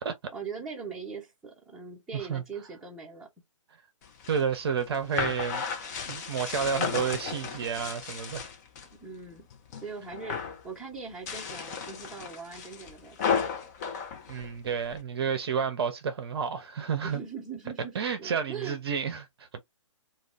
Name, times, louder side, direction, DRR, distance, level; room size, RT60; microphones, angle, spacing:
voice 1, 0.3-3.3 8.9-9.5 9.8-13.5 17.0-18.8, right 5 dB, 5° right, 0.9 m, -41 dB
voice 2, 2.1-2.4 4.3-5.7 6.1-8.5 14.3-17.2 17.9-19.6, right 6 dB, 50° right, 0.6 m, -30 dB
sound 1, 4.0-8.9 9.3-9.8 10.1-10.6 11.1-15.0, left 6 dB, 30° left, 0.7 m, -34 dB
2.3 x 2.3 x 3.4 m
figure-of-eight pair, 125°, 17 cm